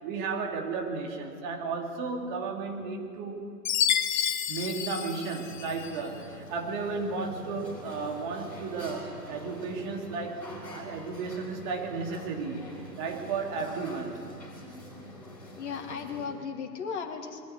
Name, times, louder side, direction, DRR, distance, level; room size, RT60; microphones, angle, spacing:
voice 1, 0.0-3.4 4.5-14.3, right 4 dB, 30° right, 2 dB, 2.6 m, -34 dB
Chime, 3.6-6.0, left 9 dB, 30° left, 0.9 m, -29 dB
sound 1, 5.4-16.3, equal, 5° left, 5.3 m, -45 dB
voice 2, 15.6-17.4, left 6 dB, 45° left, 2 dB, 2.8 m, -36 dB
23.0 x 14.0 x 9.6 m, 2.6 s
figure-of-eight pair, 135°, 48 cm